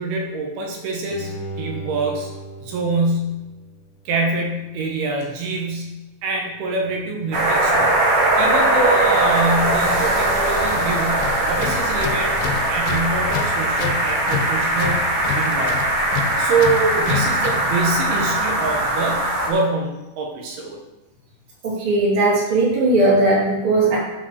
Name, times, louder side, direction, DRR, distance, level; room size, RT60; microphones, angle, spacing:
voice 1, 0.0-2.3 2.6-3.4 4.1-8.0 8.4-12.4 12.7-15.9 16.4-20.8, right 3 dB, 85° right, 0 dB, 3.2 m, -25 dB
Bowed string instrument, 1.1-4.2 4.6-4.7, right 1 dB, 50° left, 1.9 m, -36 dB
sound 1, 7.3-19.5, right 1 dB, 55° right, 1.7 m, -20 dB
Tools, 11.2-17.8, left 8 dB, 80° left, 2.3 m, -30 dB
voice 2, 21.6-24.0, right 2 dB, 35° right, -5 dB, 3.4 m, -18 dB
8.0 x 5.7 x 6.5 m, 1.0 s
omnidirectional pair, 4.2 m